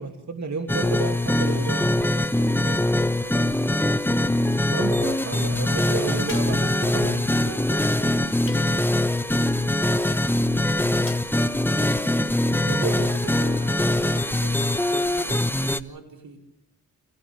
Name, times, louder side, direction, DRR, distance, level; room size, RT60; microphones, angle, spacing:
voice 1, 0.0-1.8 4.7-7.3 12.6-13.1, right 4 dB, 50° right, 4 dB, 2.9 m, -31 dB
sound 1, 0.7-15.8, left 1 dB, 5° left, 1.1 m, -23 dB
voice 2, 1.4-4.1 5.7-6.6 7.4-12.1 12.5-16.4, right 3 dB, 80° right, 2 dB, 4.9 m, -44 dB
sound 2, 6.3-6.8 8.5-9.0 11.1-11.3, left 3 dB, 35° left, 3.8 m, -41 dB
29.5 x 29.0 x 3.6 m, 0.76 s
wide cardioid pair, 80°, 35 cm